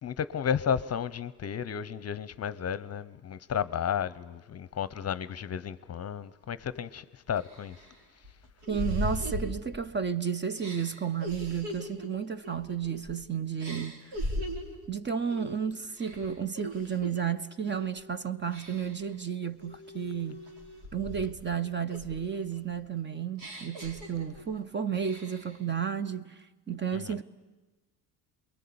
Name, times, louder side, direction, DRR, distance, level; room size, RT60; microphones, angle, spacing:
voice 1, 0.0-7.8 26.9-27.2, left 8 dB, 35° left, 0.8 m, -33 dB
sound 1, 6.7-6.8 7.4-10.1 10.6-13.2 13.6-14.8 15.3-15.6 15.9-17.2 17.6-18.0 18.5-19.1 19.6-21.5 21.9-24.6 24.9-25.6, equal, 70° right, 4.5 m, -39 dB
voice 2, 8.7-14.1 14.9-20.4 20.9-27.2, right 7 dB, 25° right, 0.8 m, -32 dB
28.0 x 22.0 x 8.7 m
cardioid pair, 100°, 41 cm